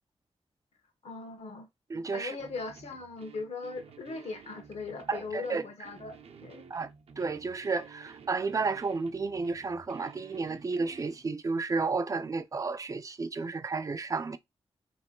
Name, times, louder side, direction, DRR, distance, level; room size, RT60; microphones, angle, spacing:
voice 1, 1.0-1.7 2.1-6.6, left 3 dB, 80° left, 1.3 m, -39 dB
voice 2, 1.9-2.4 5.1-5.6 6.7-6.9 7.2-14.4, right 4 dB, 30° right, 0.4 m, -32 dB
sound 1, 2.4-11.2, right 6 dB, 70° right, 0.7 m, -53 dB
3.3 x 3.0 x 4.4 m
wide cardioid pair, 170°, 11 cm